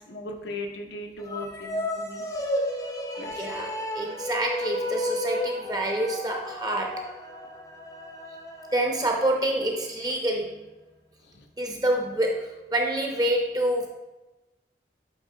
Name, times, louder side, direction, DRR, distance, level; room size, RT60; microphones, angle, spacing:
voice 1, 0.0-2.3 3.2-3.5 11.2-11.5, left 2 dB, 75° left, 2 dB, 0.9 m, -38 dB
sound 1, 1.2-9.7, left 1 dB, 20° left, 0.7 m, -33 dB
voice 2, 3.4-7.1 8.7-10.7 11.6-13.9, right 1 dB, 20° right, 1 dB, 0.9 m, -27 dB
8.7 x 4.1 x 3.9 m, 1.1 s
head